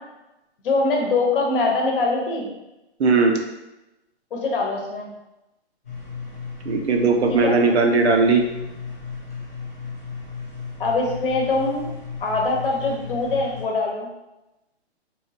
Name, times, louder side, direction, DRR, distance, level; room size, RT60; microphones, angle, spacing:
voice 1, 0.6-2.5 4.3-5.1 7.3-7.6 10.8-11.9 12.2-14.1, left 3 dB, 55° left, 0 dB, 0.9 m, -23 dB
voice 2, 3.0-3.4 6.7-8.4, right 4 dB, 75° right, 4 dB, 0.7 m, -18 dB
sound 1, 5.8-13.6, left 5 dB, 15° left, 0.4 m, -35 dB
3.1 x 3.1 x 2.8 m, 0.97 s
hypercardioid pair, 155°, 33 cm